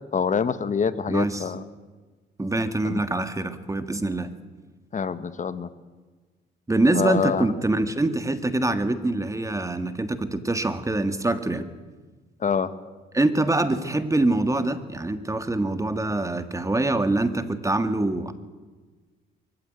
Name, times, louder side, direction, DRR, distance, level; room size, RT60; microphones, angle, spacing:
voice 1, 0.1-1.6 2.8-3.0 4.9-5.7 6.9-7.4 12.4-12.7, left 6 dB, 40° left, 13 dB, 1.4 m, -25 dB
voice 2, 1.1-1.5 2.4-4.3 6.7-11.7 13.1-18.3, right 2 dB, 15° right, 10 dB, 1.6 m, -24 dB
23.0 x 15.5 x 9.4 m, 1.3 s
cardioid pair, 90°, 20 cm